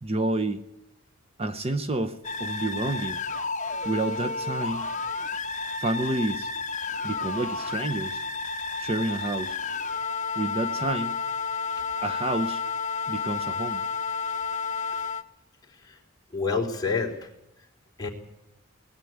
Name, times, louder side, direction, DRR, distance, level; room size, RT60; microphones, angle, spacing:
voice 1, 0.0-0.7 1.4-3.2 3.8-4.9 5.8-6.5 7.0-8.2 8.8-9.6 10.4-11.2 12.0-12.6 13.1-13.8, right 2 dB, 30° right, 9 dB, 0.8 m, -29 dB
sound 1, 2.2-15.2, left 4 dB, 40° left, 1.2 m, -31 dB
voice 2, 16.3-17.3 18.0-18.1, left 4 dB, 20° left, -1 dB, 3.6 m, -28 dB
20.0 x 14.0 x 9.4 m, 0.89 s
head